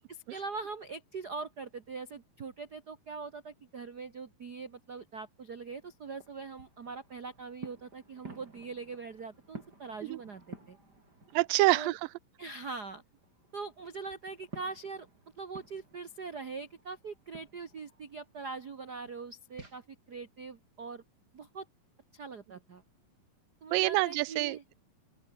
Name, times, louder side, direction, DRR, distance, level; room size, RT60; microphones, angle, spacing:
voice 1, 0.1-10.8 11.7-12.0 12.4-13.0 13.5-15.1 15.4-21.0 21.3-21.6 22.1-22.8 23.6-24.6, right 4 dB, 65° right, 0.9 m, -42 dB
sound 1, 5.1-12.0 12.3-19.8, right 2 dB, 25° right, 7.5 m, -53 dB
voice 2, 11.3-12.0 23.7-24.7, right 21 dB, 80° right, 2.2 m, -27 dB
open air
omnidirectional pair, 4.1 m